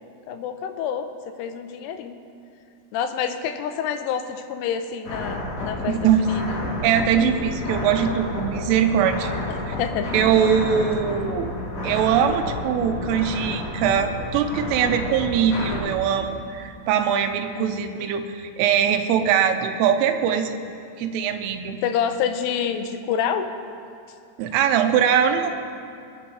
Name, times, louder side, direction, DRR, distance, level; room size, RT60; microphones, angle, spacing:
voice 1, 0.3-2.2 2.9-6.6 9.8-10.2 17.6-18.1 21.8-23.5, left 8 dB, 85° left, 7 dB, 3.3 m, -28 dB
sound 1, 5.1-15.8, left 1 dB, 60° left, 5.5 m, -30 dB
voice 2, 5.8-6.3 6.8-9.3 9.7-9.8 10.1-11.5 11.8-20.6 21.0-21.8 24.4-25.5, right 8 dB, 90° right, 7 dB, 3.2 m, -22 dB
25.0 x 9.6 x 3.1 m, 2.4 s
omnidirectional pair, 5.6 m